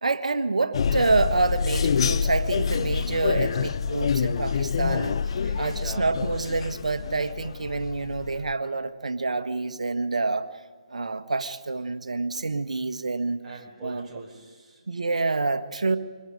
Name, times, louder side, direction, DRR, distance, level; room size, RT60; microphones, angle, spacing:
voice 1, 0.0-5.2 5.6-10.5 10.9-13.4 13.8-14.1 14.9-16.0, right 3 dB, 75° right, 9 dB, 1.4 m, -27 dB
sound 1, 0.7-8.5, left 6 dB, 50° left, 0.7 m, -27 dB
voice 2, 5.4-6.2 13.4-14.9 15.9-16.0, right 2 dB, 15° right, -3 dB, 5.2 m, -43 dB
26.0 x 21.0 x 5.2 m, 1.5 s
figure-of-eight pair, 145°, 4 cm